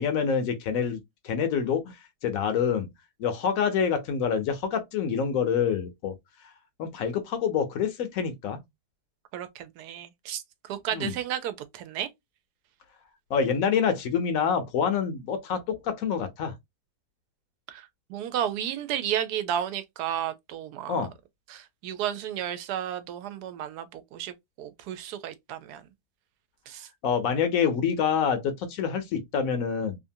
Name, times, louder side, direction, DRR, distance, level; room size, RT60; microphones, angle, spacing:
voice 1, 0.0-2.0 2.2-2.9 3.2-6.1 6.8-8.6 10.9-11.2 13.3-16.5 20.9-21.1 27.0-30.0, left 7 dB, 70° left, 0.9 m, -26 dB
voice 2, 9.3-10.4 10.7-12.1 17.7-21.0 21.5-25.8 26.7-26.9, right 10 dB, 90° right, 1.1 m, -33 dB
2.8 x 2.5 x 2.6 m
omnidirectional pair, 1.6 m